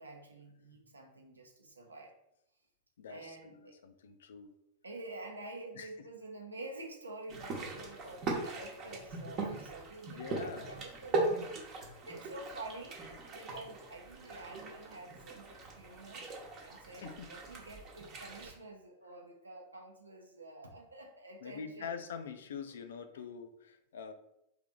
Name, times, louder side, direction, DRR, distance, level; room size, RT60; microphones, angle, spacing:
voice 1, 0.0-2.1 3.1-3.8 4.8-10.2 10.5-16.3 16.6-21.9, right 2 dB, 80° right, 1 dB, 0.7 m, -48 dB
voice 2, 3.0-4.5 5.7-5.9 10.1-10.7 17.0-17.3 21.4-24.1, left 6 dB, 60° left, 9 dB, 0.4 m, -44 dB
sound 1, 7.3-18.5, right 3 dB, 35° right, 1.0 m, -40 dB
3.3 x 3.0 x 3.7 m, 0.82 s
figure-of-eight pair, 90°, 0 cm